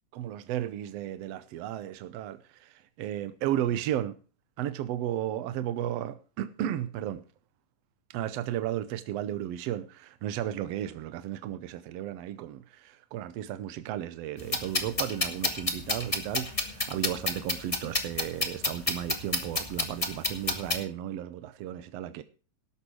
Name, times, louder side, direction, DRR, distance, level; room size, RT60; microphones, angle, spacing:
voice 1, 0.1-4.2 4.6-7.2 8.1-22.2, right 11 dB, 80° right, 1.5 m, -34 dB
sound 1, 14.4-20.8, left 2 dB, 25° left, 0.7 m, -30 dB
18.0 x 7.1 x 4.7 m
omnidirectional pair, 3.7 m